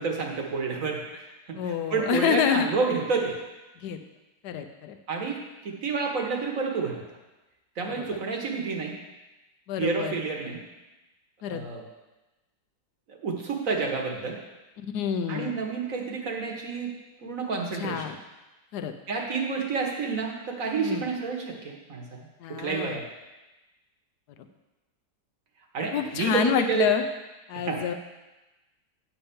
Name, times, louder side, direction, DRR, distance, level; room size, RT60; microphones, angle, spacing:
voice 1, 0.0-3.4 5.1-7.0 7.8-9.0 9.8-10.6 11.5-11.8 13.1-14.4 15.3-16.9 17.2-18.1 19.1-23.0 25.7-26.9 27.5-27.8, right 5 dB, 50° right, 0 dB, 1.5 m, -29 dB
voice 2, 1.5-2.7 3.8-4.0 4.4-5.0 7.9-8.0 9.7-10.1 11.4-11.6 14.9-15.5 17.8-18.2 18.7-18.9 20.8-21.0 22.4-23.0 25.9-27.0 27.5-27.9, left 8 dB, 65° left, 7 dB, 1.2 m, -27 dB
10.0 x 4.5 x 7.0 m, 1.1 s
omnidirectional pair, 2.0 m